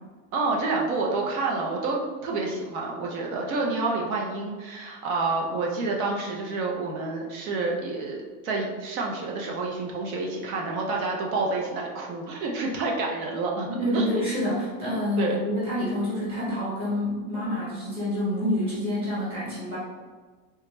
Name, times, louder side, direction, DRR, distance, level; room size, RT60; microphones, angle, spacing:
voice 1, 0.3-14.2 15.2-15.4, right 3 dB, 65° right, -1 dB, 0.7 m, -28 dB
voice 2, 13.7-19.8, left 1 dB, 10° right, -9 dB, 0.7 m, -27 dB
3.4 x 2.3 x 3.0 m, 1.4 s
supercardioid pair, 180°, 46 cm